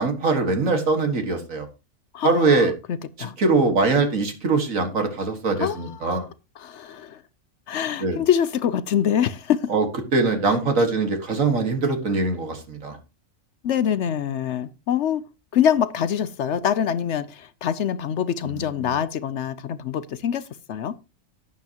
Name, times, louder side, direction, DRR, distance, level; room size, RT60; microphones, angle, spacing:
voice 1, 0.0-1.7 2.2-2.7 3.2-6.3 8.0-8.2 9.7-9.9 10.1-13.0 18.4-19.0, right 3 dB, 75° right, 2.2 m, -22 dB
voice 2, 2.1-3.7 5.6-6.2 6.6-7.2 7.7-9.7 13.6-15.2 15.5-20.4 20.7-20.9, left 9 dB, 65° left, 0.9 m, -25 dB
11.5 x 9.5 x 2.9 m
omnidirectional pair, 1.4 m